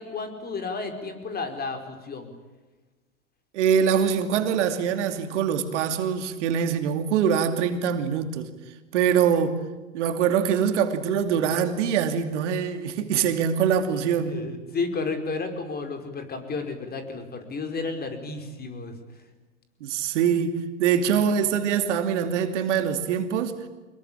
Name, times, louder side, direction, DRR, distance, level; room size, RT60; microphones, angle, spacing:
voice 1, 0.0-2.3 14.3-18.9, left 4 dB, 25° left, 4.9 m, -32 dB
voice 2, 3.5-8.5 8.9-9.6 9.9-14.4 19.8-23.6, right 7 dB, 65° right, 2.8 m, -24 dB
25.5 x 21.5 x 8.9 m
hypercardioid pair, 105°, 38 cm